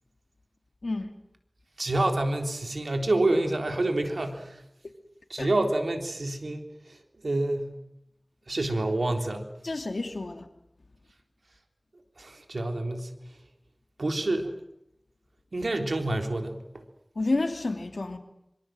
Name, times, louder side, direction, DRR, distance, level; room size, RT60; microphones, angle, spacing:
voice 1, 1.8-4.6 5.3-7.0 7.2-7.7 8.5-9.5 12.2-13.1 14.0-14.5 15.5-16.8, right 2 dB, 80° right, 3.7 m, -28 dB
voice 2, 9.6-10.4 17.2-18.2, left 2 dB, 80° left, 2.6 m, -29 dB
26.0 x 25.0 x 7.7 m
wide cardioid pair, 45°, 0 cm